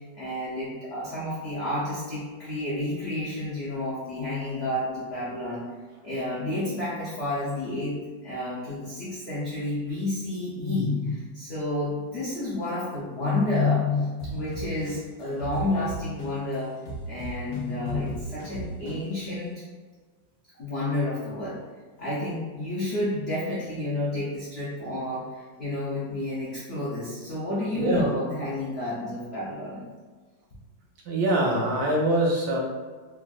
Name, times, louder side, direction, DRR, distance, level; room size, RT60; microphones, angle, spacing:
voice 1, 0.0-5.6 6.0-8.0 8.2-16.8 17.1-19.6 20.6-21.6 22.0-29.9, left 2 dB, 75° left, -8 dB, 0.5 m, -30 dB
sound 1, 14.2-16.5 16.9-19.2, right 3 dB, 60° left, 1.0 m, -36 dB
voice 2, 31.0-32.6, right 1 dB, 70° right, -2 dB, 1.0 m, -23 dB
3.3 x 2.4 x 2.2 m, 1.4 s
omnidirectional pair, 1.9 m